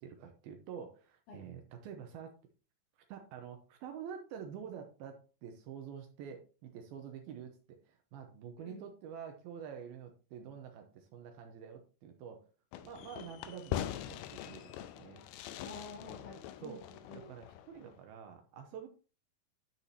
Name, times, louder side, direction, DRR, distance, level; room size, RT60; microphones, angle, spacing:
voice 1, 0.0-2.3 3.1-12.4 12.8-15.2 16.1-16.3 16.6-16.8 17.1-18.9, right 7 dB, 75° right, 5 dB, 2.6 m, -48 dB
Fireworks, 12.7-18.0, left 11 dB, 85° left, 2.7 m, -43 dB
voice 2, 15.6-17.3, left 2 dB, 55° left, -2 dB, 3.7 m, -50 dB
10.0 x 7.0 x 2.8 m, 0.36 s
omnidirectional pair, 4.6 m